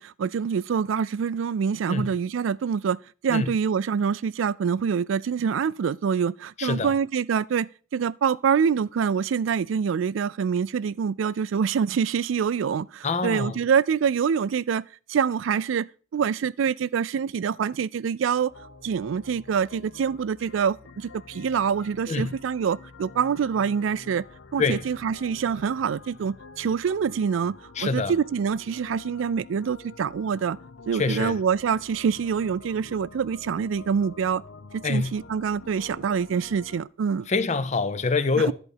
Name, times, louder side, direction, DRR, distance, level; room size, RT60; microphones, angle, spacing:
voice 1, 0.0-18.5 18.8-24.2 24.5-27.6 27.8-30.6 30.9-34.4 34.7-37.3 38.4-38.5, right 7 dB, 75° right, 0.3 m, -25 dB
voice 2, 6.6-6.9 13.0-13.6 22.1-22.3 24.6-24.9 27.8-28.2 30.9-31.4 34.8-35.2 37.3-38.5, left 4 dB, 35° left, 0.5 m, -25 dB
sound 1, 18.5-36.8, left 4 dB, 70° left, 0.8 m, -47 dB
11.0 x 4.0 x 6.5 m
head